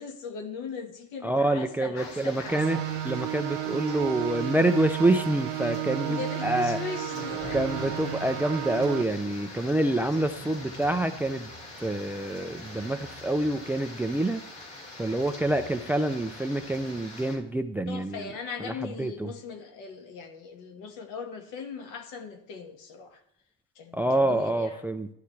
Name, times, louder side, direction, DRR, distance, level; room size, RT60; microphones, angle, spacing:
voice 1, 0.0-2.8 6.0-7.9 17.9-23.2 23.7-24.9, left 5 dB, 70° left, 6 dB, 1.7 m, -39 dB
voice 2, 1.2-2.8 3.0-6.8 7.5-11.5 11.8-14.4 15.0-18.3 18.7-18.8 19.0-19.3 23.9-25.1, right 1 dB, 5° right, 11 dB, 0.3 m, -27 dB
sound 1, 1.9-17.4, left 2 dB, 55° left, 4.7 m, -43 dB
sound 2, 2.4-9.0, right 15 dB, 70° right, 0.9 m, -33 dB
13.0 x 10.5 x 3.3 m, 0.76 s
cardioid pair, 140°, 33 cm